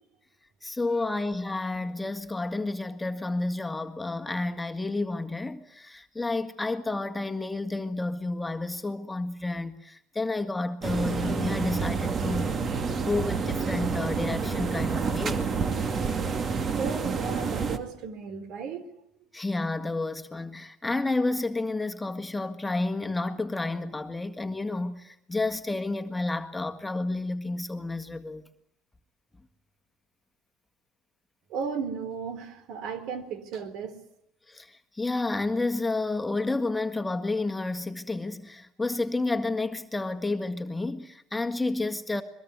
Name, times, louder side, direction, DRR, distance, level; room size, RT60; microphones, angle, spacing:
voice 1, 0.6-12.6 13.0-15.5 19.3-28.4 34.5-42.2, left 2 dB, 10° left, 1.9 m, -30 dB
sound 1, 10.8-17.8, right 5 dB, 40° right, 2.3 m, -28 dB
voice 2, 16.8-18.8 31.5-34.0, right 6 dB, 65° right, 3.7 m, -35 dB
22.5 x 22.0 x 9.5 m
supercardioid pair, 95°, 0 cm